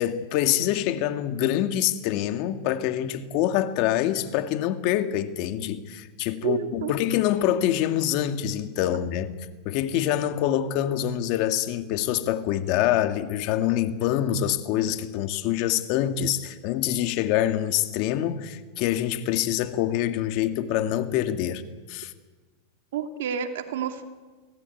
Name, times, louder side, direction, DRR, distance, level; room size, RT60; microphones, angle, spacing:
voice 1, 0.0-9.3 9.7-21.6 21.9-22.1, left 11 dB, 50° left, 8 dB, 2.0 m, -25 dB
voice 2, 6.4-6.9 22.9-24.0, right 8 dB, 75° right, 6 dB, 2.6 m, -29 dB
25.5 x 17.5 x 9.5 m, 1.4 s
supercardioid pair, 135°, 0 cm